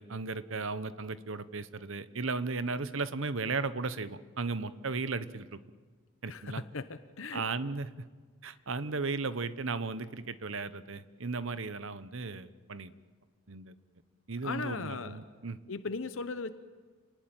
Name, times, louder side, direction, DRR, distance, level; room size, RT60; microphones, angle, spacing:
voice 1, 0.0-5.6 6.2-6.6 7.3-7.9 8.4-12.9 13.5-13.8 14.3-15.6, right 4 dB, 60° right, 13 dB, 1.0 m, -35 dB
voice 2, 6.3-6.9 7.2-7.4 14.4-15.2 15.7-16.5, left 4 dB, 60° left, 11 dB, 0.9 m, -37 dB
29.0 x 19.5 x 8.9 m, 1.5 s
head